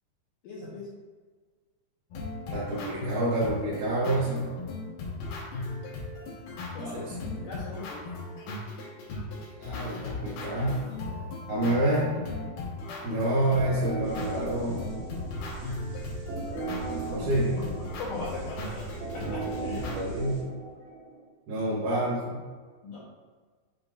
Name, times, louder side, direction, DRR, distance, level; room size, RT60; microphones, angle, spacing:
voice 1, 0.4-1.0 6.7-8.0 17.6-17.7 18.0-18.9 19.1-19.9 22.8-23.0, left 3 dB, 85° left, -6 dB, 1.8 m, -39 dB
sound 1, 2.1-20.0, left 2 dB, 70° left, 2.9 m, -37 dB
voice 2, 2.5-4.5 6.9-7.0 9.6-10.8 11.5-12.1 13.0-14.8 17.1-17.6 19.9-20.5 21.5-22.4, right 1 dB, 65° right, -10 dB, 3.0 m, -28 dB
sound 2, 13.6-21.2, right 3 dB, 90° right, 3.6 m, -37 dB
7.8 x 5.3 x 2.4 m, 1.4 s
omnidirectional pair, 5.0 m